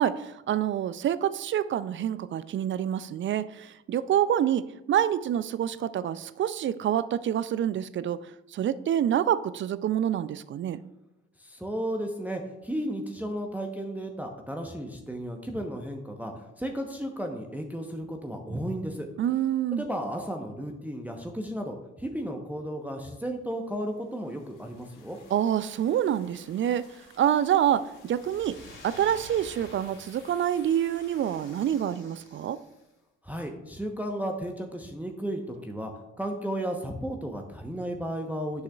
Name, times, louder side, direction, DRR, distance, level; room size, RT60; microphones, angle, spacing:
voice 1, 0.0-8.2 8.5-10.8 19.2-19.8 25.3-26.8 27.2-28.6 28.8-32.6, right 10 dB, 35° right, 16 dB, 0.4 m, -27 dB
voice 2, 11.4-19.1 19.7-25.2 33.2-35.9 36.2-38.6, equal, 5° right, 2 dB, 0.9 m, -34 dB
sound 1, 23.5-31.9, left 4 dB, 65° left, 1.9 m, -58 dB
sound 2, 27.9-32.8, left 2 dB, 35° left, 2.6 m, -50 dB
9.9 x 6.3 x 2.4 m, 0.92 s
figure-of-eight pair, 45°, 35 cm